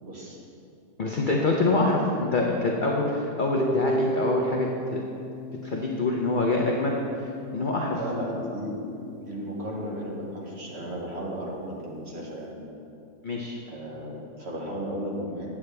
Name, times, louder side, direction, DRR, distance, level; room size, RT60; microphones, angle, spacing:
voice 1, 0.0-0.4 7.9-8.8 9.2-12.7 13.7-15.5, equal, 45° right, -3 dB, 1.4 m, -34 dB
voice 2, 1.0-5.0 5.6-6.9 7.5-8.0 13.2-13.6, left 2 dB, 70° left, -1 dB, 0.4 m, -25 dB
Harp, 3.6-9.6, right 1 dB, 85° right, 1.3 m, -34 dB
8.5 x 8.4 x 3.3 m, 2.6 s
omnidirectional pair, 1.8 m